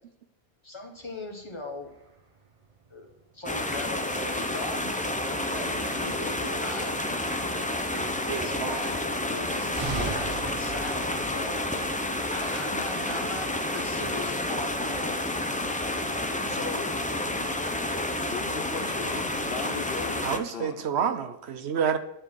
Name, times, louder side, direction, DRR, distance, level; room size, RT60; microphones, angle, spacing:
voice 1, 0.6-1.9 2.9-3.1 3.3-6.9 7.9-9.0 9.2-11.6 12.3-15.2, left 2 dB, 25° left, 2 dB, 1.4 m, -39 dB
sound 1, 1.0-18.4, right 4 dB, 35° right, 0.9 m, -44 dB
sound 2, 3.5-20.4, left 1 dB, 10° left, 0.4 m, -30 dB
voice 2, 8.3-8.8 20.2-22.0, right 7 dB, 85° right, 10 dB, 1.0 m, -29 dB
voice 3, 16.5-17.0 18.3-20.9, left 6 dB, 65° left, 9 dB, 0.9 m, -37 dB
10.0 x 4.7 x 6.2 m, 0.80 s
omnidirectional pair, 1.1 m